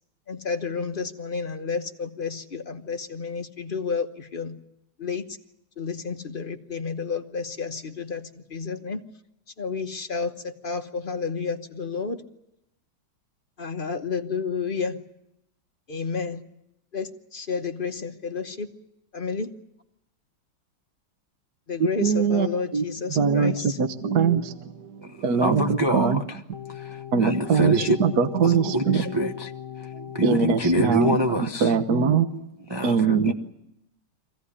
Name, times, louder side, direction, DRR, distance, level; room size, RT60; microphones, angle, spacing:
voice 1, 0.3-4.6 5.0-5.2 5.8-9.0 9.6-12.2 13.6-15.0 15.9-16.4 16.9-18.7 19.1-19.5 21.7-23.8 27.6-27.9 28.1-28.2 29.0-29.3 30.7-31.0, left 5 dB, 35° left, 0.9 m, -31 dB
voice 2, 22.0-22.5 22.7-22.8 23.1-26.2 27.1-27.7 28.0-29.1 29.9-31.2 31.6-32.4 32.8-33.3, right 6 dB, 55° right, 1.5 m, -22 dB
voice 3, 25.0-26.4 26.7-28.0 28.4-29.5 29.8-31.7 32.7-33.3, right 1 dB, 20° right, 0.6 m, -26 dB
sound 1, 26.5-30.6, left 10 dB, 80° left, 1.9 m, -39 dB
24.5 x 16.0 x 9.9 m
omnidirectional pair, 2.2 m